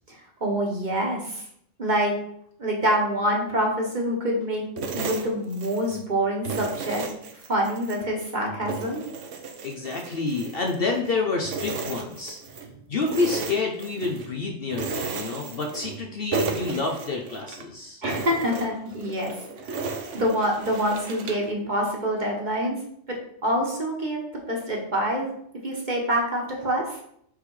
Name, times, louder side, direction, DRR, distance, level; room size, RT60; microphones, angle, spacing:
voice 1, 0.4-1.4 1.8-2.1 2.6-4.6 4.9-7.0 7.5-9.0 18.0-22.7 23.1-24.2 24.5-25.3 25.6-27.0, equal, 35° right, -1 dB, 1.4 m, -26 dB
sound 1, 4.8-6.0 6.5-8.0 8.4-11.1 11.4-12.7 13.0-14.3 14.7-16.0 16.3-17.6 18.0-21.5, right 4 dB, 65° right, 1.1 m, -34 dB
voice 2, 9.6-12.4 12.9-18.0, left 3 dB, 50° left, 2 dB, 0.9 m, -28 dB
6.6 x 3.6 x 4.8 m, 0.70 s
omnidirectional pair, 1.4 m